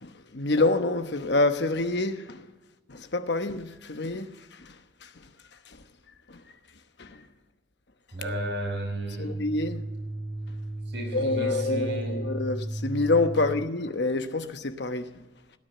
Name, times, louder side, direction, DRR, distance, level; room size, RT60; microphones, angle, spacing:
voice 1, 0.0-2.4 2.9-4.8 5.0-5.1 5.7-5.8 6.3-6.4 7.0-7.2 9.2-9.8 11.1-15.1, left 2 dB, 60° left, 1.0 m, -27 dB
sound 1, 8.1-13.7, right 1 dB, 25° right, 0.5 m, -34 dB
voice 2, 8.2-9.3 10.9-12.2 13.4-13.6, left 1 dB, 65° right, 5.5 m, -35 dB
17.0 x 9.6 x 7.9 m
head